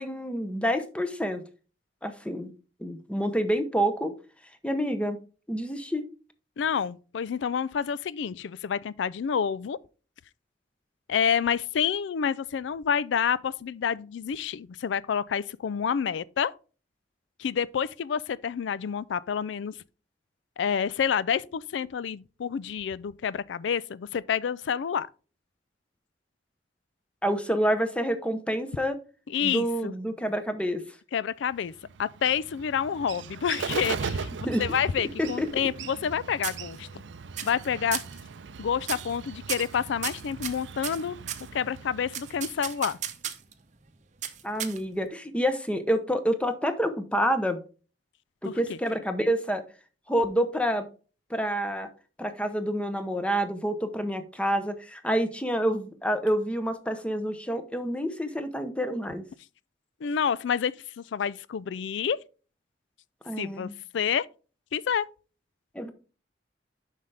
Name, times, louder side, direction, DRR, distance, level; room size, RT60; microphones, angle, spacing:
voice 1, 0.0-1.4 2.0-2.5 2.8-4.1 4.6-5.2 5.5-6.1 27.2-29.0 29.4-30.8 34.4-34.6 35.2-35.5 44.4-47.6 48.4-49.6 50.1-50.9 51.3-51.9 52.2-59.3 63.3-63.7 65.7-65.9, equal, 5° left, 0.7 m, -28 dB
voice 2, 6.6-9.8 11.1-16.5 17.4-19.8 20.6-25.1 29.3-29.9 31.1-31.7 32.0-34.3 34.6-36.9 37.4-38.0 38.6-41.2 41.5-43.0 48.4-48.8 60.0-62.2 63.4-64.3 64.7-65.1, left 7 dB, 75° left, 0.4 m, -28 dB
Bird, 31.5-43.0, right 5 dB, 80° right, 0.5 m, -39 dB
sound 1, 35.2-36.1 36.4-37.0 37.4-37.7 37.9-38.2 38.8-39.2 39.5-41.5 42.1-43.5 44.2-45.1, right 10 dB, 40° right, 0.7 m, -35 dB
7.4 x 5.6 x 3.3 m
head